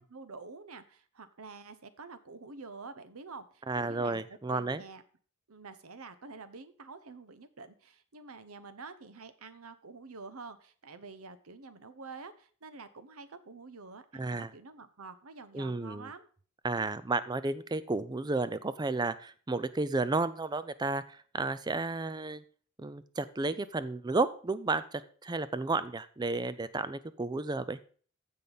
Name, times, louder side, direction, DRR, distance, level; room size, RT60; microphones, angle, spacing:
voice 1, 0.0-5.0 5.5-16.3, right 4 dB, 75° right, 12 dB, 1.0 m, -48 dB
voice 2, 3.7-4.8 14.1-14.5 15.5-16.1 16.6-22.4 22.8-27.8, right 3 dB, 20° right, 14 dB, 0.5 m, -32 dB
15.0 x 5.4 x 4.1 m, 0.43 s
head